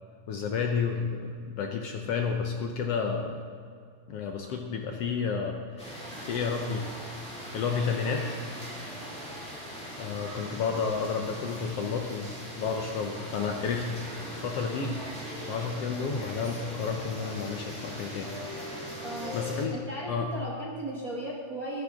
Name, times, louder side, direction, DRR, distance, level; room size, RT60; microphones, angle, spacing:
voice 1, 0.3-3.4 4.1-6.8 7.5-8.2 10.0-15.0 15.5-18.3 19.3-19.8 20.1-20.3, left 5 dB, 65° left, 3 dB, 1.6 m, -31 dB
sound 1, 5.8-19.6, equal, ahead, 3.3 m, -40 dB
voice 2, 19.0-19.4 19.7-21.8, right 1 dB, 45° right, -3 dB, 1.2 m, -36 dB
15.5 x 13.0 x 3.7 m, 2.2 s
omnidirectional pair, 3.5 m